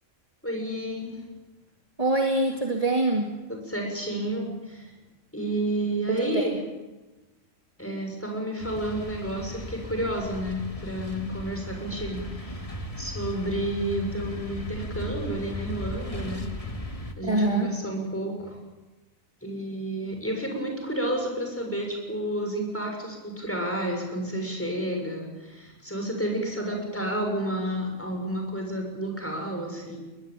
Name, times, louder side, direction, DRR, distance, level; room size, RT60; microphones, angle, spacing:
voice 1, 0.4-1.1 3.5-4.9 5.3-6.6 7.8-16.4 17.2-18.6 19.4-30.0, right 1 dB, 10° left, 2 dB, 6.7 m, -31 dB
voice 2, 2.0-3.3 6.1-6.4 17.2-17.7, right 2 dB, 25° right, 1 dB, 2.3 m, -24 dB
sound 1, 8.6-17.1, left 1 dB, 25° left, 1.9 m, -36 dB
22.5 x 20.0 x 9.1 m, 1.1 s
omnidirectional pair, 1.4 m